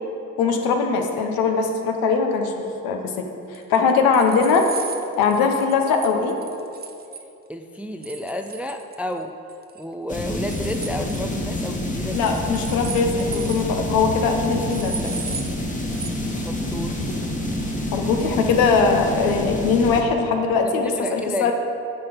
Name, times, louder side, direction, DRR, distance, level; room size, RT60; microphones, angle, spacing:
voice 1, 0.4-3.2 3.5-4.7 5.2-6.4 12.1-15.1 17.0-17.2 17.9-21.5, left 5 dB, 70° left, 4 dB, 1.0 m, -21 dB
sound 1, 3.5-7.2 8.0-9.2 9.5-9.8 10.1-11.2 12.1-13.7 14.0-14.1 14.3-14.4 14.7-15.5 15.9-16.1, right 5 dB, 25° right, 0.7 m, -36 dB
voice 2, 7.5-9.4 9.8-12.2 16.4-17.0 20.6-21.5, left 1 dB, 5° right, 6 dB, 0.4 m, -31 dB
sound 2, 10.1-20.0, left 1 dB, 20° left, 1.4 m, -27 dB
9.6 x 4.0 x 5.2 m, 2.7 s
hypercardioid pair, 55°, 37 cm